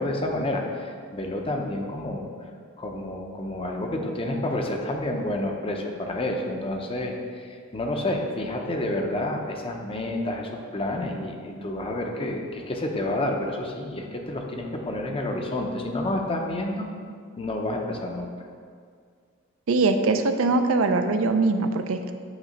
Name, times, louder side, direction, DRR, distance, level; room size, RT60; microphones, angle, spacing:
voice 1, 0.0-2.3 2.8-16.9 17.4-18.3, left 1 dB, 25° left, 2 dB, 0.6 m, -29 dB
voice 2, 19.7-22.1, right 3 dB, 65° right, 7 dB, 0.4 m, -22 dB
8.1 x 3.1 x 5.1 m, 2.1 s
head